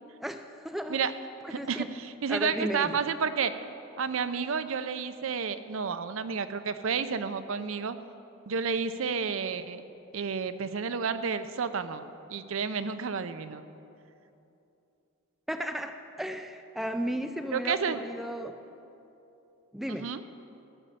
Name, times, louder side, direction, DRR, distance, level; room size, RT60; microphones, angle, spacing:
voice 1, 0.2-1.0 1.4-1.9 2.3-3.0 15.5-18.6 19.7-20.1, equal, ahead, 7 dB, 0.3 m, -34 dB
voice 2, 1.5-3.5 4.0-8.0 8.5-9.8 10.1-13.6 17.5-18.0 19.9-20.2, right 6 dB, 70° right, 11 dB, 0.6 m, -31 dB
14.5 x 6.3 x 7.8 m, 2.8 s
head